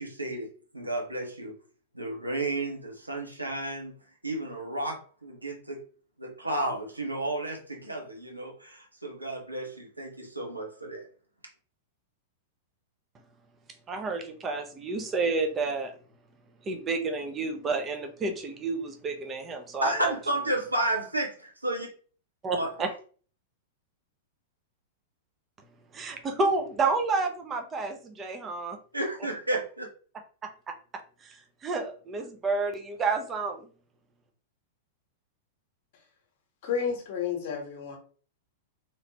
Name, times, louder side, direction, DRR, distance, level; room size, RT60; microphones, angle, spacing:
voice 1, 0.0-1.5 1.9-3.9 4.2-5.8 6.2-11.1 19.8-21.9 22.5-22.7 28.9-29.9, right 1 dB, 90° right, 0 dB, 1.0 m, -32 dB
voice 2, 13.9-15.9 16.7-20.1 22.4-22.9 25.9-28.8 30.7-30.8 31.2-31.3 31.6-33.6, right 3 dB, 20° right, 5 dB, 0.6 m, -30 dB
voice 3, 36.6-38.0, left 7 dB, 50° left, 3 dB, 1.0 m, -31 dB
3.1 x 2.9 x 2.8 m, 0.41 s
figure-of-eight pair, 95°, 0 cm